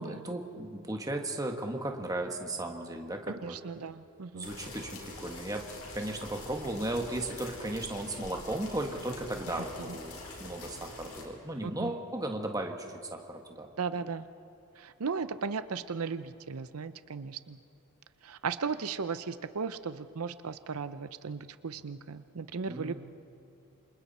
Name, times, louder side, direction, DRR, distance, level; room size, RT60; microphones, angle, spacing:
voice 1, 0.0-3.6 4.3-5.7 5.9-13.7 22.7-22.9, right 1 dB, 15° right, 3 dB, 1.7 m, -36 dB
voice 2, 3.4-4.5 9.9-10.0 11.8-11.9 13.8-14.3 14.8-17.6 18.2-22.9, right 5 dB, 80° right, 12 dB, 0.6 m, -36 dB
sound 1, 4.4-11.2, left 2 dB, 80° left, 4.7 m, -44 dB
28.5 x 26.5 x 4.3 m, 2.9 s
head